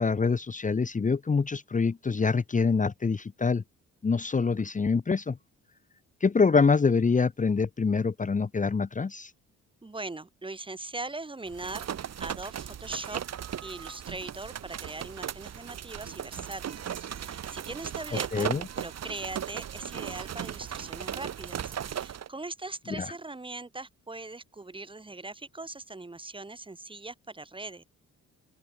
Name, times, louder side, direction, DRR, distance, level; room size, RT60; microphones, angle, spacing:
voice 1, 0.0-3.6 4.0-5.4 6.2-9.3 18.3-18.6 22.9-23.1, left 4 dB, 25° left, 1.3 m, -25 dB
voice 2, 9.8-11.9 12.2-13.2 13.6-18.5 18.8-27.8, right 2 dB, 15° right, 2.0 m, -40 dB
sound 1, 11.5-22.3, right 9 dB, 60° right, 3.0 m, -37 dB
open air
cardioid pair, 90°, 30 cm